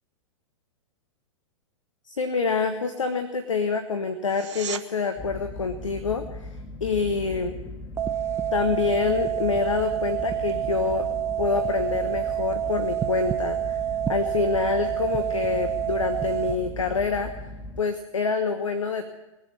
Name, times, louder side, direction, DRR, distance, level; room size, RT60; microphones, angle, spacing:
voice 1, 2.1-7.5 8.5-11.1 11.4-17.3 17.8-19.1, left 4 dB, 75° left, 7 dB, 1.2 m, -26 dB
sound 1, 4.2-4.9 16.2-16.3, right 8 dB, 60° right, 0.9 m, -35 dB
sound 2, 5.2-17.8, left 2 dB, 10° left, 1.2 m, -38 dB
sound 3, 8.0-16.6, right 11 dB, 15° right, 0.5 m, -28 dB
20.5 x 7.5 x 9.0 m, 0.99 s
figure-of-eight pair, 100°, 17 cm